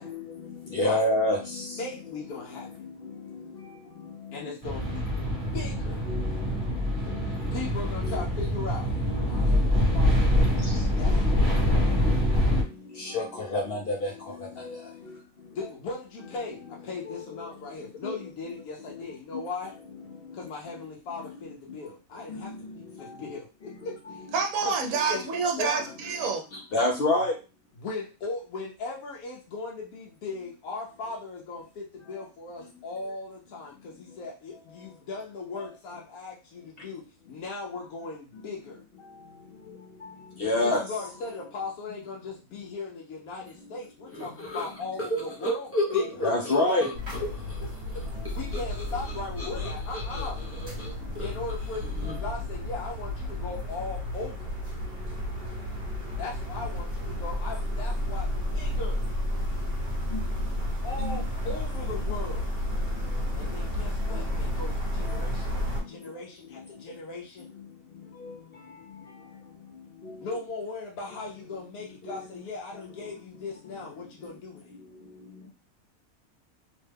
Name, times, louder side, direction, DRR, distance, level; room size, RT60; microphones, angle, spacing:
voice 1, 0.0-1.8 6.1-6.2 7.1-7.2 8.0-8.2 9.0-9.2 10.7-10.8 12.1-12.2 13.0-14.8 17.0-17.5 18.0-18.1 22.3-22.9 24.1-24.2 25.0-25.2 26.7-27.3 40.4-41.1 46.2-46.9 60.1-60.2 61.0-61.3 64.1-64.2 72.1-72.2, left 2 dB, 55° left, 0.7 m, -28 dB
voice 2, 1.8-2.7 4.3-5.2 5.5-6.1 7.2-8.9 9.2-10.5 11.0-11.7 15.5-19.8 20.3-22.5 23.0-24.3 24.6-24.8 25.1-25.2 25.6-25.9 27.8-38.8 40.6-46.3 47.6-48.1 48.3-50.4 51.2-54.6 56.2-59.1 60.8-62.5 63.4-67.5 69.2-69.4 70.2-74.7, left 3 dB, 80° left, 1.1 m, -38 dB
sound 1, 4.6-12.6, left 1 dB, 20° right, 1.0 m, -25 dB
voice 3, 24.3-26.4, right 5 dB, 70° right, 1.1 m, -27 dB
sound 2, 44.1-47.6 47.9-52.4, left 1 dB, 20° left, 0.3 m, -33 dB
sound 3, 46.9-65.8, left 1 dB, 45° right, 1.3 m, -32 dB
3.0 x 2.1 x 3.3 m
omnidirectional pair, 1.5 m